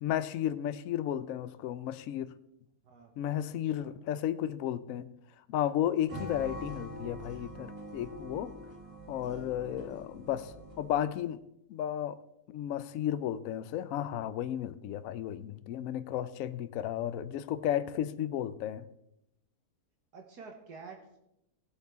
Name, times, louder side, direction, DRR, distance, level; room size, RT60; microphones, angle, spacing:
voice 1, 0.0-2.3 3.2-5.1 5.5-8.5 9.1-11.4 11.7-12.2 12.5-18.8, left 11 dB, 70° left, 13 dB, 0.9 m, -33 dB
voice 2, 3.4-3.9 20.1-21.2, right 4 dB, 75° right, 3 dB, 1.9 m, -50 dB
sound 1, 6.1-11.2, equal, 20° right, 1.4 m, -44 dB
17.5 x 8.0 x 3.6 m, 0.84 s
omnidirectional pair, 1.7 m